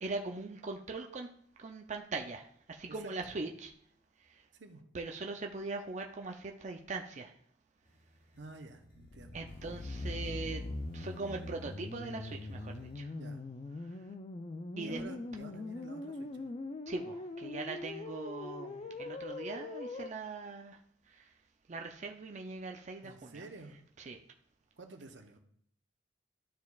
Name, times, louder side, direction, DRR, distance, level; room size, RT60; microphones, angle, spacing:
voice 1, 0.0-1.3 1.6-3.7 4.2-4.5 4.9-7.4 9.3-10.6 10.9-13.1 13.8-14.0 14.8-15.0 16.9-20.8 21.1-21.3 21.7-23.4 24.0-24.2, right 3 dB, 40° right, 3 dB, 0.5 m, -41 dB
voice 2, 2.9-3.3 4.5-4.8 8.4-9.4 13.1-13.4 14.8-16.5 23.0-23.8 24.8-25.4, right 3 dB, 75° right, 5 dB, 0.9 m, -50 dB
sound 1, 7.8-13.0, equal, 55° left, 1.4 m, -61 dB
sound 2, 8.9-20.1, left 2 dB, 35° left, 0.4 m, -42 dB
12.5 x 4.7 x 2.4 m, 0.63 s
head